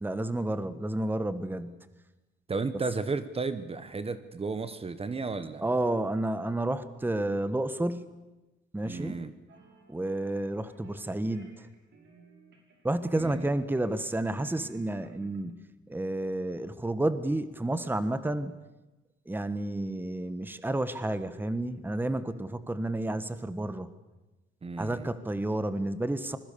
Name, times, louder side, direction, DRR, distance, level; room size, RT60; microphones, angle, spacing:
voice 1, 0.0-1.8 5.6-8.1 8.7-9.1 9.9-11.7 12.8-15.6 15.9-18.5 19.3-23.9 24.8-26.4, right 1 dB, 10° right, 12 dB, 1.3 m, -30 dB
voice 2, 2.5-5.7 8.8-9.3 13.1-13.5 24.6-25.1, right 4 dB, 30° right, 12 dB, 1.3 m, -33 dB
sound 1, 9.5-10.2 10.7-11.0 11.3-12.9 13.1-14.1 14.4-15.4, right 2 dB, 65° right, 6.1 m, -55 dB
26.5 x 21.5 x 6.9 m, 1.0 s
cardioid pair, 90°, 20 cm